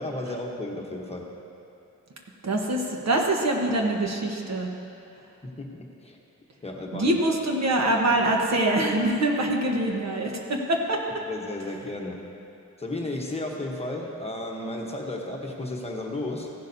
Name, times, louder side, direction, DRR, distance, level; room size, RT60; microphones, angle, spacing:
voice 1, 0.0-1.3 5.4-6.2 6.6-7.2 11.3-12.1 12.8-16.5, left 2 dB, 20° left, -1 dB, 1.0 m, -33 dB
voice 2, 2.4-4.7 6.9-11.0, right 1 dB, 60° right, 1 dB, 1.2 m, -24 dB
15.5 x 11.0 x 2.7 m, 2.7 s
wide cardioid pair, 140°, 30 cm